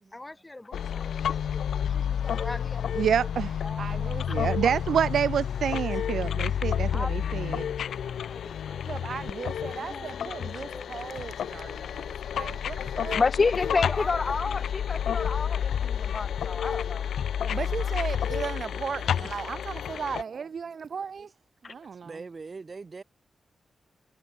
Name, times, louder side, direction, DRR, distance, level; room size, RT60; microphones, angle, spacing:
voice 1, 0.1-4.7 6.9-9.2 9.6-10.9 13.6-14.8 17.8-18.0, left 2 dB, 15° left, 2.0 m, -43 dB
sound 1, 0.7-20.2, left 8 dB, 90° left, 0.6 m, -30 dB
voice 2, 3.0-3.5 4.3-7.1 7.3-7.7, right 8 dB, 85° right, 0.3 m, -26 dB
voice 3, 3.8-4.2 8.9-13.2 17.5-21.3 21.6-22.2, right 6 dB, 50° right, 1.4 m, -36 dB
voice 4, 13.1-17.1 17.4-17.6 21.6-21.7, left 4 dB, 35° left, 0.5 m, -28 dB
voice 5, 21.7-23.0, right 4 dB, 30° right, 2.5 m, -43 dB
wide cardioid pair, 150°, 0 cm